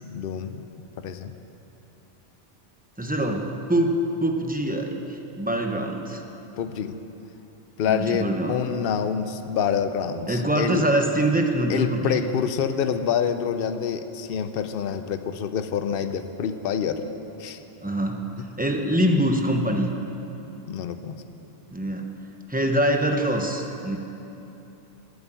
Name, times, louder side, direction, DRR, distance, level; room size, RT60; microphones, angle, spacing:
voice 1, 0.0-0.6 1.0-1.3 6.6-7.0 7.8-10.8 11.7-17.1 17.4-17.6 20.7-21.2, left 7 dB, 60° left, 9 dB, 0.8 m, -27 dB
voice 2, 3.0-6.2 7.9-8.6 10.3-12.2 17.8-18.3 18.6-19.9 21.7-22.1 22.5-24.0, right 1 dB, 10° right, 3 dB, 0.8 m, -24 dB
12.0 x 8.1 x 9.1 m, 3.0 s
omnidirectional pair, 1.1 m